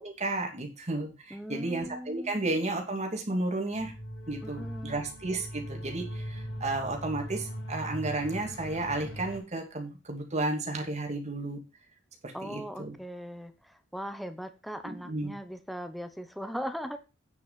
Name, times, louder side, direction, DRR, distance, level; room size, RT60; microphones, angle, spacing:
voice 1, 0.0-3.9 4.3-11.6 12.2-13.0 14.8-15.3, right 2 dB, 35° right, 2 dB, 2.6 m, -33 dB
voice 2, 1.3-2.4 4.4-5.0 12.3-17.0, equal, ahead, 9 dB, 0.9 m, -39 dB
sound 1, 3.7-9.4, equal, 85° left, 4.4 m, -40 dB
9.5 x 6.0 x 5.7 m, 0.30 s
head